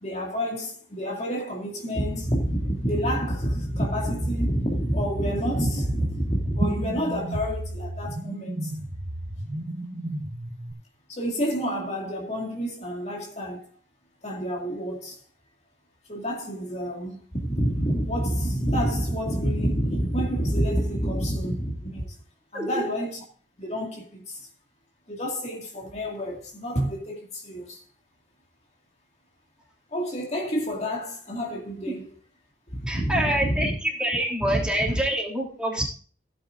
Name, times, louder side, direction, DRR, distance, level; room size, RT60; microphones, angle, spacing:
voice 1, 0.0-8.7 11.1-13.7 14.2-15.2 16.1-22.2 22.5-23.2 23.6-24.5 25.1-27.8 29.9-32.1 32.7-33.8 34.4-35.0, equal, 35° left, 2.1 m, -28 dB
sound 1, 5.7-10.7, right 1 dB, 45° right, 1.4 m, -32 dB
voice 2, 22.5-22.9 32.9-35.9, right 1 dB, 5° right, 3.3 m, -26 dB
16.0 x 9.0 x 2.5 m
head